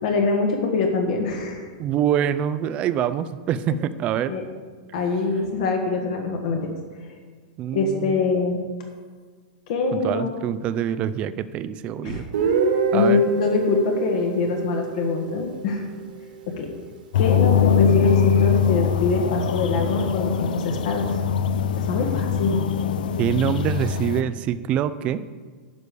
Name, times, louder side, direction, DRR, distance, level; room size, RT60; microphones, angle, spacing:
voice 1, 0.0-1.7 3.7-3.8 4.3-4.4 4.9-6.7 7.7-8.6 9.7-10.3 12.0-12.2 12.9-15.8 16.5-16.7 17.1-21.0 21.8-22.6, left 4 dB, 55° left, 2 dB, 1.5 m, -24 dB
voice 2, 1.8-4.3 7.6-8.3 9.9-12.3 12.9-13.2 23.2-25.2, right 10 dB, 25° right, 14 dB, 0.4 m, -25 dB
Guitar, 12.3-16.2, right 4 dB, 75° right, 2.0 m, -26 dB
sound 1, 17.1-24.2, left 7 dB, 85° left, 0.5 m, -22 dB
11.0 x 5.0 x 6.9 m, 1.5 s
supercardioid pair, 160°, 5 cm